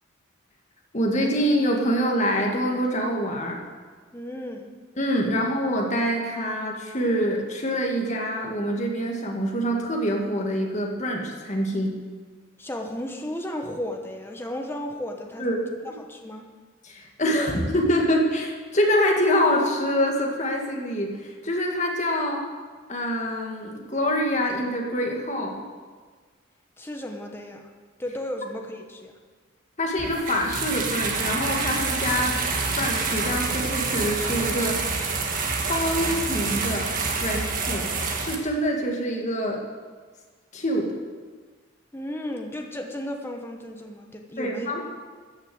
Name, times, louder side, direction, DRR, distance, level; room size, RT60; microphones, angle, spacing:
voice 1, 0.9-3.6 5.0-12.0 15.4-15.6 16.8-22.4 22.9-25.7 29.8-32.4 32.8-34.8 35.7-37.9 38.2-39.7 40.5-40.9 44.4-44.8, equal, 35° left, 0 dB, 2.0 m, -25 dB
voice 2, 4.1-4.7 12.6-15.5 15.8-16.5 26.8-27.7 28.0-29.1 41.9-44.8, left 1 dB, 10° left, 2 dB, 1.1 m, -34 dB
sound 1, 30.0-38.4, right 4 dB, 40° right, 1.6 m, -27 dB
13.5 x 6.5 x 7.8 m, 1.5 s
head